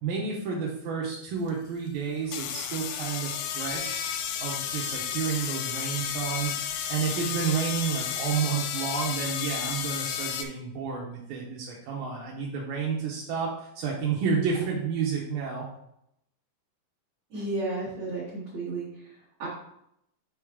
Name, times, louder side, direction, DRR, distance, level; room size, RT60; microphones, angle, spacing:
voice 1, 0.0-4.0 4.4-15.7, right 6 dB, 80° right, -4 dB, 2.0 m, -30 dB
sound 1, 1.5-1.6 2.3-10.4, left 9 dB, 85° left, 2.6 m, -32 dB
voice 2, 17.3-19.1 19.4-19.5, right 2 dB, 65° right, -7 dB, 1.7 m, -33 dB
6.7 x 5.0 x 3.5 m, 0.76 s
omnidirectional pair, 5.4 m